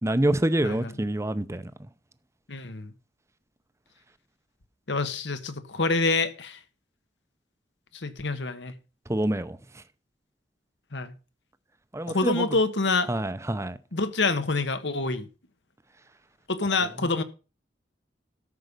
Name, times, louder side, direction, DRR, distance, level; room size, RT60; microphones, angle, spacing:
voice 1, 0.0-1.6 9.1-9.6 11.9-12.4 13.1-13.8, right 1 dB, 15° right, 0.7 m, -26 dB
voice 2, 2.5-2.9 4.9-6.6 7.9-8.7 10.9-11.1 12.1-13.1 13.9-15.3 16.5-17.2, left 3 dB, 85° left, 1.4 m, -27 dB
13.0 x 5.4 x 6.7 m
head